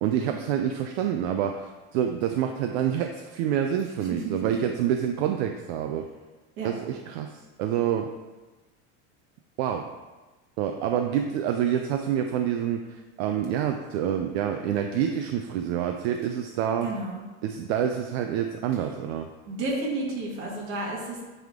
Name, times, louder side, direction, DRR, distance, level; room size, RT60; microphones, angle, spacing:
voice 1, 0.0-6.1 6.6-8.1 9.6-9.9 10.6-17.0 17.4-19.3, right 9 dB, 60° right, 5 dB, 0.5 m, -27 dB
voice 2, 16.8-17.2 19.5-21.2, right 2 dB, 35° right, -3 dB, 1.7 m, -31 dB
9.2 x 3.5 x 3.6 m, 1.2 s
cardioid pair, 170°, 36 cm